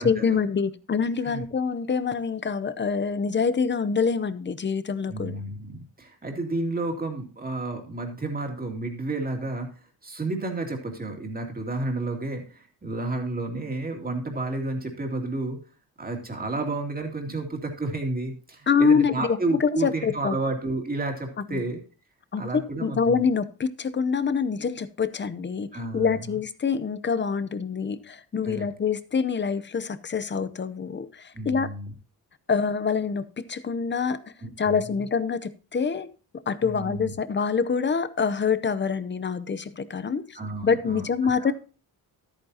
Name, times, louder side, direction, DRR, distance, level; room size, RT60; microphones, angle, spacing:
voice 1, 0.0-5.5 18.7-20.4 21.5-21.6 22.3-31.7 32.5-34.2 34.6-36.1 36.5-41.5, left 5 dB, 30° left, 13 dB, 0.7 m, -26 dB
voice 2, 5.1-9.7 10.0-15.6 16.0-21.8 22.4-23.2 25.7-26.2 28.4-28.7 31.3-31.9 34.4-34.8 36.6-37.1 40.3-41.1 41.3-41.5, right 2 dB, 25° right, 3 dB, 2.6 m, -31 dB
13.5 x 8.9 x 2.8 m, 0.36 s
wide cardioid pair, 150°, 37 cm